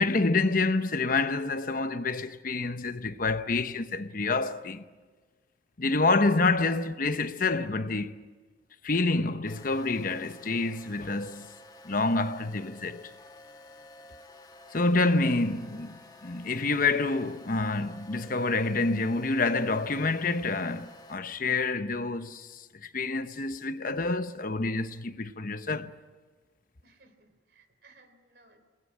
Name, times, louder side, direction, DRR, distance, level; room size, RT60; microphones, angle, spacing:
voice 1, 0.0-4.8 5.8-8.1 8.8-11.5 11.8-13.1 14.7-25.9, left 3 dB, 50° left, 0.9 m, -28 dB
sound 1, 9.5-21.1, left 2 dB, 20° left, 1.5 m, -51 dB
voice 2, 26.8-28.6, right 3 dB, 65° right, 3.5 m, -60 dB
28.0 x 19.5 x 8.8 m
head